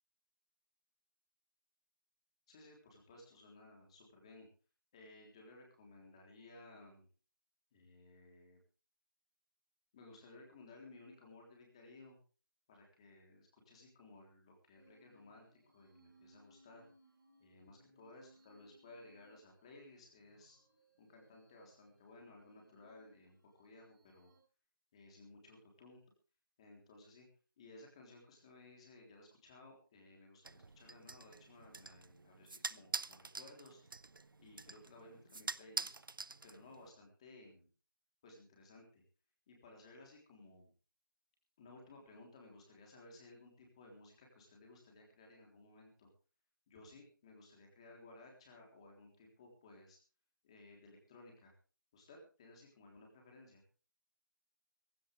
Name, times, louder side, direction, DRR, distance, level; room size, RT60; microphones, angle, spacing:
voice 1, 2.5-4.5 4.9-7.1 7.7-8.6 9.9-12.2 12.7-16.9 17.4-20.6 21.0-24.3 24.9-26.0 26.6-27.3 27.6-33.8 34.4-36.0 36.4-37.7 38.2-39.0 39.5-40.7 41.6-46.1 46.7-50.0 50.4-51.5 51.9-53.6, left 2 dB, 15° left, 1 dB, 3.6 m, -58 dB
sound 1, 14.7-24.4, right 1 dB, 5° right, 5.6 m, -69 dB
sound 2, 30.4-36.9, right 3 dB, 75° right, 0.8 m, -46 dB
17.0 x 16.5 x 3.4 m, 0.36 s
figure-of-eight pair, 175°, 11 cm